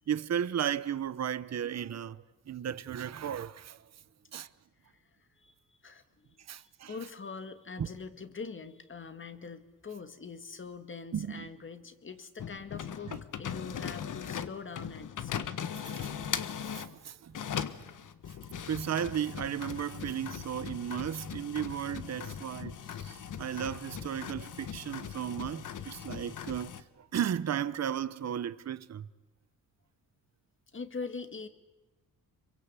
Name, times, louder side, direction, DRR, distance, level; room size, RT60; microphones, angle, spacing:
voice 1, 0.1-3.8 4.3-4.5 6.4-7.0 7.8-7.9 11.1-11.5 13.1-13.2 15.8-16.1 16.7-17.4 18.7-29.1, right 9 dB, 45° right, 0.9 m, -35 dB
voice 2, 5.4-6.4 6.9-15.5 30.7-31.5, left 5 dB, 35° left, 2.0 m, -43 dB
sound 1, 12.4-16.9 17.3-26.8, left 8 dB, 60° left, 1.4 m, -39 dB
26.5 x 23.5 x 8.3 m
cardioid pair, 115°, 35 cm